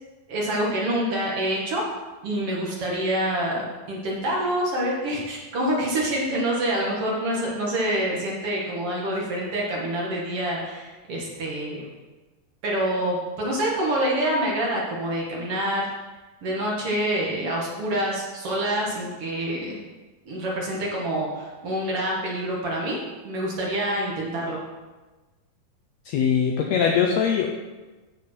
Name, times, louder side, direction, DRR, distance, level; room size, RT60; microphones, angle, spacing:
voice 1, 0.3-1.8 2.2-11.9 12.6-15.9 16.4-19.8 20.3-23.0 23.2-24.6, right 1 dB, 50° right, -3 dB, 2.1 m, -26 dB
voice 2, 26.0-27.5, left 7 dB, 85° left, 2 dB, 1.6 m, -21 dB
9.5 x 7.3 x 4.3 m, 1.2 s
omnidirectional pair, 3.9 m